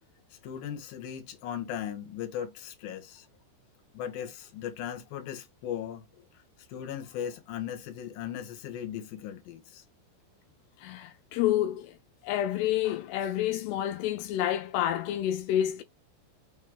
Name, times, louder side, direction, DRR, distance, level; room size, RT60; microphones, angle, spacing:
voice 1, 0.4-3.3 3.9-6.0 6.7-9.8, left 9 dB, 60° left, 2.8 m, -37 dB
voice 2, 10.8-12.0 12.2-15.8, left 12 dB, 85° left, 2.3 m, -29 dB
6.5 x 4.4 x 3.7 m
omnidirectional pair, 5.5 m